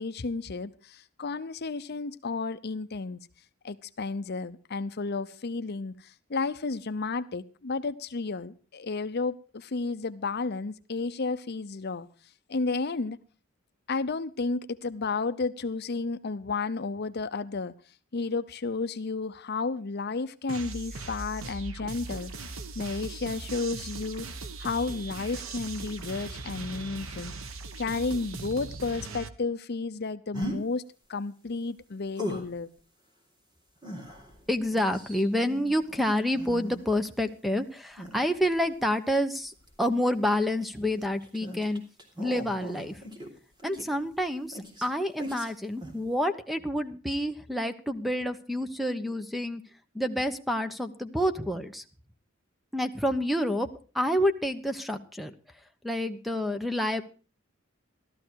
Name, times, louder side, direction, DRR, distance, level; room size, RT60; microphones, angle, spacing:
voice 1, 0.0-3.2 3.6-12.1 12.5-13.2 13.9-17.7 18.1-24.3 24.6-27.3 27.8-30.8 31.1-32.7, left 3 dB, 55° left, 0.7 m, -32 dB
Scratch weird loop, 20.5-29.3, right 3 dB, 85° right, 1.2 m, -39 dB
sound 1, 30.3-30.6 32.2-32.5 33.8-36.9 38.0-38.8 39.6-39.8 40.6-44.3 44.5-44.9 45.2-45.5 45.8-46.0, equal, 20° right, 3.6 m, -40 dB
voice 2, 34.5-39.5 39.8-41.8 42.2-43.0 43.6-49.6 49.9-51.8 52.7-53.7 53.9-55.3 55.8-57.0, equal, ahead, 1.0 m, -28 dB
15.0 x 13.0 x 4.6 m
head